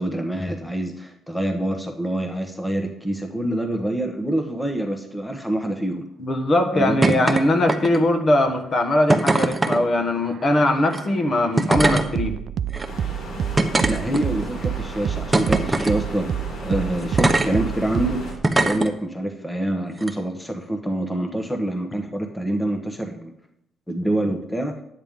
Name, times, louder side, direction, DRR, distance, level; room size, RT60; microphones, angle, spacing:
voice 1, 0.0-6.0 6.7-7.2 13.8-23.3 23.9-24.8, right 1 dB, 5° left, 4 dB, 1.1 m, -26 dB
voice 2, 6.2-12.4, left 1 dB, 40° left, 5 dB, 1.3 m, -20 dB
sound 1, 7.0-7.4 7.7-8.1 9.1-9.8 10.8-11.0 11.6-12.1 12.7-12.9 13.6-14.5 15.3-16.0 17.2-17.5 18.4-18.9 20.0-20.1, right 2 dB, 15° right, 0.9 m, -20 dB
sound 2, 9.8-18.4, right 9 dB, 60° right, 0.3 m, -29 dB
sound 3, 12.8-18.3, left 2 dB, 75° left, 2.9 m, -36 dB
10.0 x 8.9 x 3.6 m, 0.76 s
cardioid pair, 90°, 0 cm